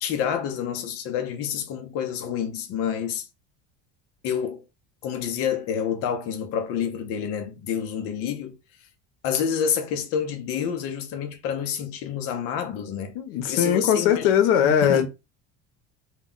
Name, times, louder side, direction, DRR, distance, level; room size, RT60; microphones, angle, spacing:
voice 1, 0.0-3.2 4.2-4.6 5.0-8.6 9.2-13.2 13.5-14.3 14.6-15.1, left 8 dB, 40° left, 0.5 m, -28 dB
voice 2, 13.1-15.1, left 9 dB, 85° left, 0.7 m, -20 dB
2.2 x 2.1 x 3.6 m
cardioid pair, 165°, 37 cm